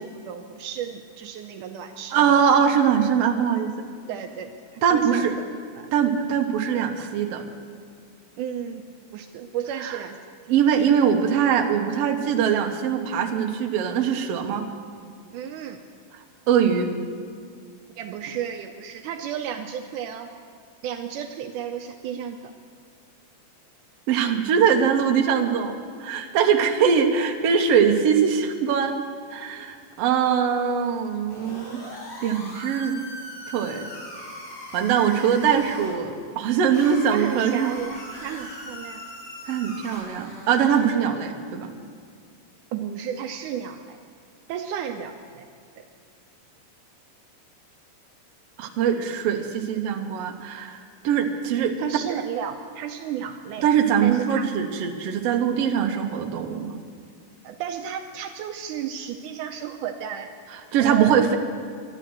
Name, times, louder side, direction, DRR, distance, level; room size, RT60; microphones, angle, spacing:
voice 1, 0.0-2.4 4.1-5.5 5.8-5.9 8.4-8.8 9.1-10.2 15.3-15.8 18.0-20.3 20.8-22.5 37.1-39.0 42.7-44.0 44.5-45.5 45.8-45.9 51.8-53.7 54.0-54.5 57.4-60.3 60.8-61.3, right 9 dB, 80° right, 6 dB, 2.0 m, -33 dB
voice 2, 2.1-3.7 4.8-5.3 5.9-7.4 9.8-10.0 10.5-14.6 16.5-16.9 24.1-28.9 29.3-31.8 32.2-33.0 33.5-33.8 34.7-37.7 39.5-41.7 48.6-50.8 51.0-51.7 53.6-56.8 60.7-61.4, right 7 dB, 65° right, 3 dB, 1.7 m, -22 dB
sound 1, 31.3-35.9 36.7-40.9, equal, 75° left, 6.4 m, -40 dB
12.0 x 11.5 x 7.7 m, 2.1 s
omnidirectional pair, 3.8 m